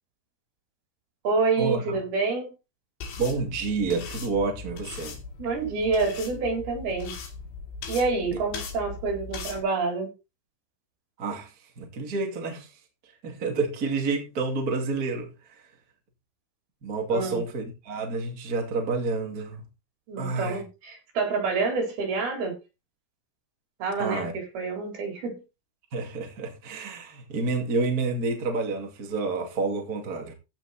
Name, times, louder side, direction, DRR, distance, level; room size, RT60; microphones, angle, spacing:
voice 1, 1.2-2.5 5.4-7.1 7.9-10.1 17.1-17.4 20.1-22.6 23.8-25.4, right 4 dB, 70° right, 6.0 m, -27 dB
sound 1, 3.0-9.6, left 5 dB, 80° left, 4.6 m, -39 dB
voice 2, 3.2-5.2 11.2-12.7 13.2-15.3 16.8-19.6 20.2-20.6 24.0-24.3 25.9-30.3, right 3 dB, 25° right, 2.4 m, -29 dB
15.5 x 6.1 x 4.3 m
omnidirectional pair, 4.6 m